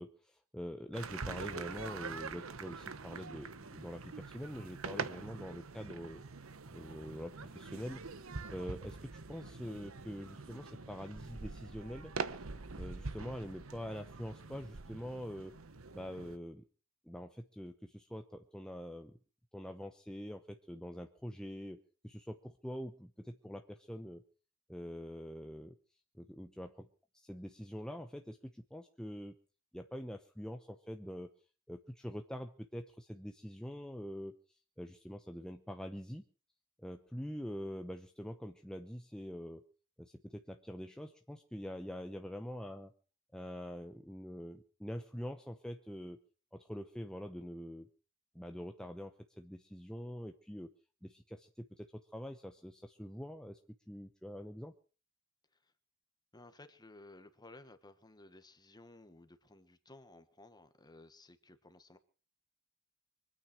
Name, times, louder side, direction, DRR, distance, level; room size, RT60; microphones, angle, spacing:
voice 1, 0.0-6.2 6.7-8.0 8.5-12.1 12.8-15.6 15.9-16.6 17.0-19.2 19.5-24.2 24.7-25.8 26.2-26.9 27.1-29.3 29.7-31.3 31.7-36.2 36.8-39.6 40.0-42.9 43.3-46.2 46.5-47.9 48.3-50.7 51.0-53.6 53.9-54.7, equal, 5° left, 5 dB, 0.9 m, -45 dB
sound 1, 0.9-16.4, right 4 dB, 80° right, 1.0 m, -44 dB
voice 2, 56.3-62.0, left 2 dB, 20° left, 10 dB, 1.5 m, -57 dB
24.0 x 9.1 x 6.2 m, 0.39 s
head